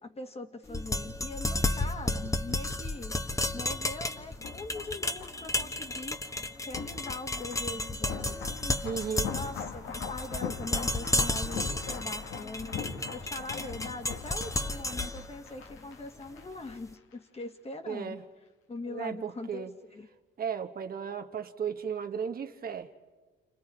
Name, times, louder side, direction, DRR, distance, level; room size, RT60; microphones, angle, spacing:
voice 1, 0.0-3.2 3.5-6.2 6.6-8.8 9.3-12.8 13.1-18.2 18.7-20.1, left 2 dB, 30° left, 1.7 m, -42 dB
sound 1, 0.7-16.7, left 2 dB, 15° left, 1.1 m, -33 dB
sound 2, 2.9-16.7 17.0-17.1, left 6 dB, 85° left, 1.7 m, -42 dB
voice 2, 8.8-9.3 17.9-18.2 18.8-19.7 20.4-23.0, right 7 dB, 50° right, 1.3 m, -35 dB
29.5 x 29.0 x 4.9 m
cardioid pair, 90°, 20 cm